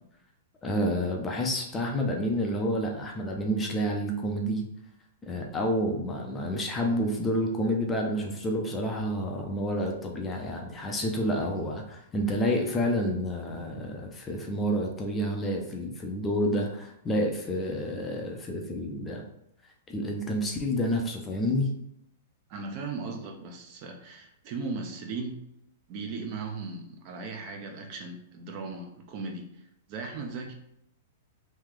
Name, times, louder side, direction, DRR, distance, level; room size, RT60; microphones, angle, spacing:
voice 1, 0.6-4.7 5.2-19.2 19.9-21.7, equal, 15° left, 1 dB, 0.5 m, -29 dB
voice 2, 22.5-25.4 25.9-29.6 29.9-30.5, right 4 dB, 35° right, 4 dB, 0.5 m, -37 dB
3.1 x 2.8 x 3.7 m, 0.77 s
hypercardioid pair, 160°, 0 cm